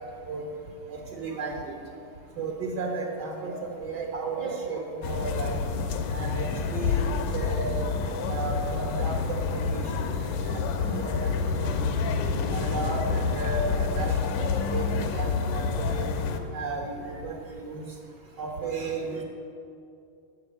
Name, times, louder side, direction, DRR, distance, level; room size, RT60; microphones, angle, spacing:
voice 1, 0.9-1.7 2.4-5.6 6.1-7.9 8.3-10.0 10.4-10.6 10.9-11.7 12.5-16.1 16.5-17.8 18.4-19.2, right 3 dB, 65° right, 0 dB, 1.0 m, -34 dB
sound 1, 5.0-16.4, left 5 dB, 80° left, 2.2 m, -28 dB
14.0 x 6.4 x 8.3 m, 2.6 s
omnidirectional pair, 3.8 m